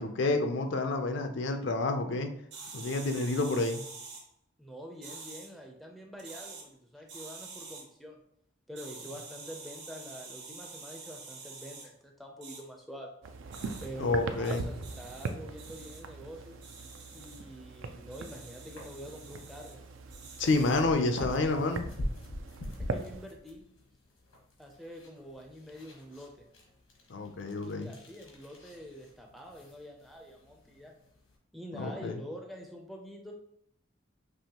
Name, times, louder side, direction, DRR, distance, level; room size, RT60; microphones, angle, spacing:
voice 1, 0.0-2.3 2.7-3.8 14.0-14.7 20.4-21.8 27.1-27.9 31.7-32.2, left 3 dB, 65° left, 6 dB, 0.5 m, -29 dB
sound 1, 2.5-4.2 5.0-5.5 6.2-6.6 7.1-7.8 8.8-11.9 12.4-12.6 13.5-13.9 14.4-15.3 15.6-16.0 16.6-17.4 18.1-19.7 20.1-20.9, right 4 dB, 60° right, 1.2 m, -47 dB
voice 2, 4.6-8.2 8.7-13.1 13.8-16.6 17.1-19.8 22.8-23.6 24.6-26.5 27.6-30.9 31.5-33.3, equal, ahead, 1 dB, 0.4 m, -46 dB
sound 2, 13.2-23.3, right 4 dB, 75° right, 0.4 m, -41 dB
sound 3, 16.0-31.4, left 1 dB, 85° left, 1.3 m, -46 dB
5.4 x 3.0 x 2.9 m, 0.72 s
head